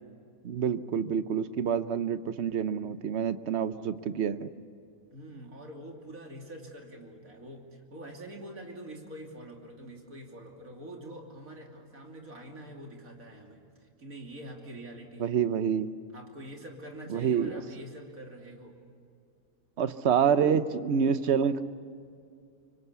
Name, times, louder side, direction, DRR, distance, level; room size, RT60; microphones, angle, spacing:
voice 1, 0.4-4.5 15.2-15.9 17.1-17.6 19.8-21.6, right 7 dB, 55° right, 12 dB, 1.1 m, -27 dB
voice 2, 5.1-15.4 16.1-18.8, right 1 dB, 70° right, 1 dB, 3.4 m, -45 dB
26.0 x 23.5 x 8.3 m, 2.4 s
omnidirectional pair, 1.5 m